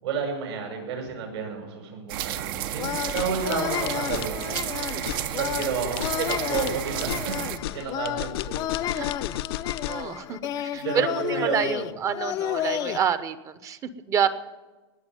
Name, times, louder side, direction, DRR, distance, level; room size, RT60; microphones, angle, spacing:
voice 1, 0.0-5.0 5.4-7.3 7.7-8.9 10.7-11.9, right 5 dB, 75° right, 2 dB, 6.6 m, -31 dB
sound 1, 2.1-7.6, right 11 dB, 55° right, 1.0 m, -32 dB
sound 2, 2.8-13.0, left 11 dB, 30° left, 0.6 m, -32 dB
sound 3, 3.0-10.1, left 14 dB, 65° left, 0.7 m, -34 dB
voice 2, 9.9-14.3, right 8 dB, 20° right, 13 dB, 0.9 m, -28 dB
19.5 x 7.0 x 9.2 m, 1.2 s
supercardioid pair, 150°, 14 cm